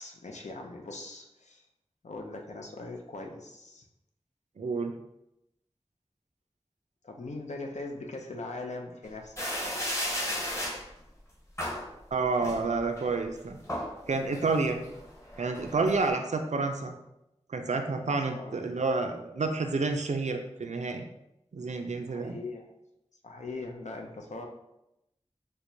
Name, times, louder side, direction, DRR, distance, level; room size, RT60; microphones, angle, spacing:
voice 1, 0.0-1.6 2.0-3.8 7.0-10.8 18.0-18.6 22.1-22.7 23.2-24.5, left 2 dB, 90° left, 2 dB, 0.5 m, -41 dB
voice 2, 4.6-4.9 12.1-13.6 14.1-14.8 15.4-17.0 17.5-21.0 21.5-22.4, right 3 dB, 90° right, 5 dB, 0.4 m, -29 dB
sound 1, 9.4-10.8 11.6-11.9 12.4-13.0 13.4-13.9 14.3-16.1, equal, 25° left, 0.9 m, -34 dB
4.5 x 2.1 x 2.6 m, 0.87 s
wide cardioid pair, 40°, 12 cm